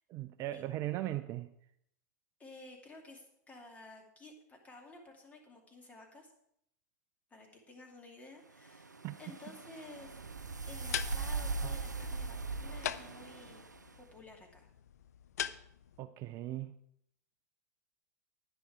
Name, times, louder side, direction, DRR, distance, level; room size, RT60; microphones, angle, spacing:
voice 1, 0.1-1.5 9.0-9.2 11.6-11.8 16.0-16.7, right 14 dB, 35° right, 11 dB, 0.5 m, -38 dB
voice 2, 2.4-6.3 7.3-10.2 10.7-13.6 14.0-14.7, left 2 dB, 15° left, 1 dB, 2.7 m, -53 dB
sound 1, 8.6-13.9, right 4 dB, 90° right, 0.5 m, -40 dB
sound 2, 10.6-16.0, left 10 dB, 65° left, 0.5 m, -43 dB
10.5 x 10.0 x 4.7 m, 0.73 s
figure-of-eight pair, 95°, 9 cm